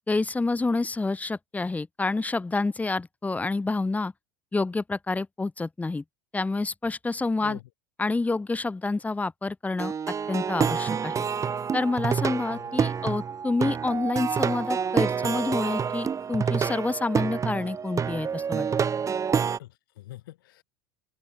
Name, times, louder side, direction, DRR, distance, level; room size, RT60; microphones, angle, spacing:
voice 1, 0.0-4.1 4.5-6.0 6.3-7.6 8.0-9.9 10.3-11.2 11.7-18.7, left 3 dB, 15° left, 4.1 m, -28 dB
Plucked string instrument, 9.8-19.6, right 6 dB, 30° right, 4.3 m, -28 dB
voice 2, 12.5-12.9 19.6-20.6, left 16 dB, 80° left, 4.8 m, -44 dB
open air
hypercardioid pair, 90°, 11 cm